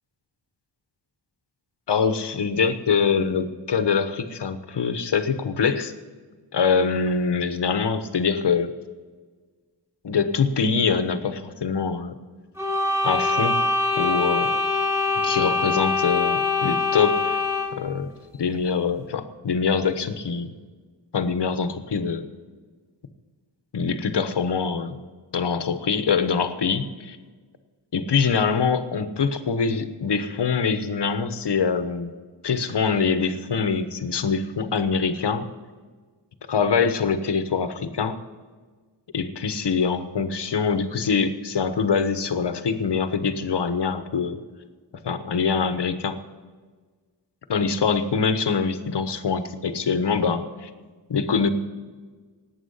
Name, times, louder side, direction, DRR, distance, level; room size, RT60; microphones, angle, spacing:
voice 1, 1.9-5.9 6.5-8.7 10.0-12.2 13.0-13.6 14.0-14.5 15.2-17.4 17.8-18.1 18.4-20.5 21.1-22.2 23.7-25.0 25.3-27.2 27.9-32.1 32.4-35.5 36.5-38.2 39.1-44.4 45.0-46.2 47.5-50.7 51.1-51.5, left 5 dB, 65° left, 10 dB, 1.2 m, -24 dB
sound 1, 12.6-17.8, left 3 dB, 5° right, 3.6 m, -23 dB
18.0 x 8.9 x 5.6 m, 1.5 s
wide cardioid pair, 150°, 43 cm